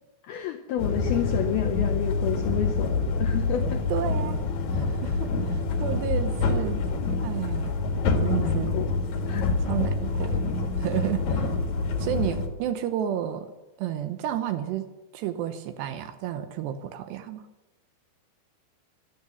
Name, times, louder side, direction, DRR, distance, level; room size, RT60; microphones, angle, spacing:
voice 1, 0.2-3.8 8.4-9.0 9.3-9.6, left 11 dB, 80° left, 4 dB, 2.2 m, -30 dB
sound 1, 0.8-12.5, left 3 dB, 55° left, 2.2 m, -26 dB
voice 2, 3.9-4.4 4.7-6.8 7.2-7.7 8.2-8.8 9.6-10.4 10.8-11.5 12.0-13.5 13.8-17.5, right 10 dB, 75° right, 9 dB, 2.9 m, -31 dB
14.0 x 12.5 x 7.0 m, 1.0 s
omnidirectional pair, 5.4 m